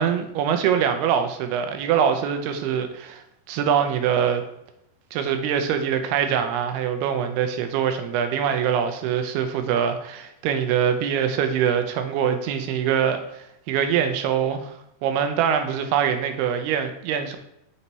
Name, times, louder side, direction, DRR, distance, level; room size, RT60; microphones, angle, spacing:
voice 1, 0.0-4.4 5.1-14.7 15.0-17.4, right 8 dB, 85° right, 7 dB, 2.7 m, -23 dB
7.0 x 4.1 x 4.2 m, 0.82 s
omnidirectional pair, 4.6 m